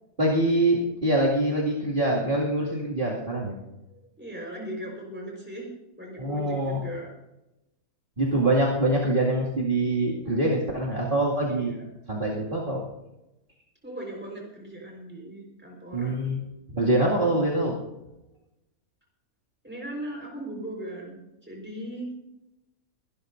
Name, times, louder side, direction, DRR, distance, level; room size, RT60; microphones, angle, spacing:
voice 1, 0.2-3.5 6.2-6.8 8.2-11.7 12.1-12.8 15.9-16.4 16.7-17.8, right 1 dB, 35° right, -6 dB, 2.5 m, -24 dB
voice 2, 4.2-5.7 6.0-7.1 11.5-11.6 13.8-16.2 19.6-22.1, right 1 dB, 5° right, -1 dB, 4.4 m, -38 dB
23.5 x 12.5 x 2.6 m, 0.93 s
omnidirectional pair, 1.5 m